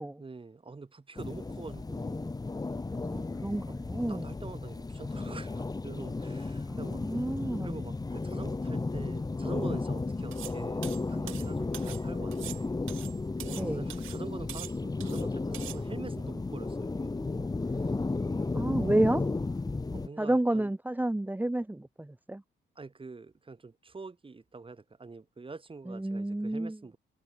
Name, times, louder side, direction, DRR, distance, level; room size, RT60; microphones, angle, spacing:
voice 1, 0.2-2.7 3.1-3.2 4.1-7.3 7.6-12.8 13.4-17.4 17.7-18.0 18.2-18.8 19.9-20.7 22.8-27.0, right 4 dB, 25° right, 5.2 m, -46 dB
sound 1, 1.2-20.1, left 3 dB, 20° left, 1.6 m, -34 dB
voice 2, 2.9-4.3 6.7-7.7 13.5-13.9 18.5-19.3 20.2-22.4 25.9-26.8, right 1 dB, 10° right, 1.4 m, -30 dB
sound 2, 10.3-10.6 10.8-12.0 12.3-13.7 13.9-14.2 14.5-15.2 15.5-15.8, right 14 dB, 85° right, 6.9 m, -43 dB
cardioid pair, 90°, 20 cm